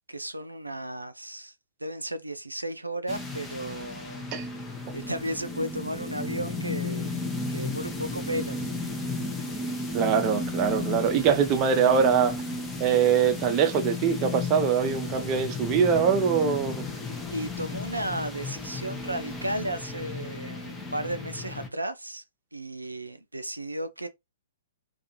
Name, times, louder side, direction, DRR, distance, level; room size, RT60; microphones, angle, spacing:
voice 1, 0.1-1.5 1.8-4.2 4.9-7.2 7.5-8.7 17.3-22.2 22.5-24.1, right 1 dB, 90° right, 0.3 m, -34 dB
sound 1, 3.1-21.7, left 3 dB, 10° left, 0.6 m, -34 dB
voice 2, 9.9-12.4 12.8-16.8, right 7 dB, 30° right, 0.5 m, -23 dB
2.4 x 2.3 x 2.8 m
figure-of-eight pair, 115°, 0 cm